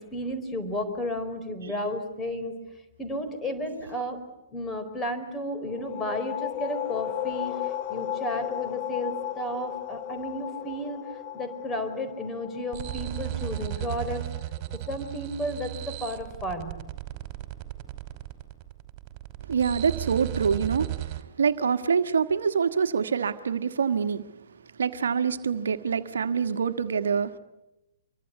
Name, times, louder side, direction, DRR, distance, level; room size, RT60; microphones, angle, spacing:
voice 1, 0.0-2.5 3.0-4.2 4.5-14.2 14.9-16.7, left 1 dB, 15° left, 7 dB, 4.4 m, -33 dB
sound 1, 5.6-15.0, left 12 dB, 40° left, 1.3 m, -35 dB
sound 2, 12.7-21.2, right 15 dB, 35° right, 2.9 m, -35 dB
voice 2, 19.5-24.2 24.8-27.4, right 6 dB, 70° right, 10 dB, 1.4 m, -25 dB
26.5 x 23.5 x 8.3 m, 0.93 s
figure-of-eight pair, 120°, 0 cm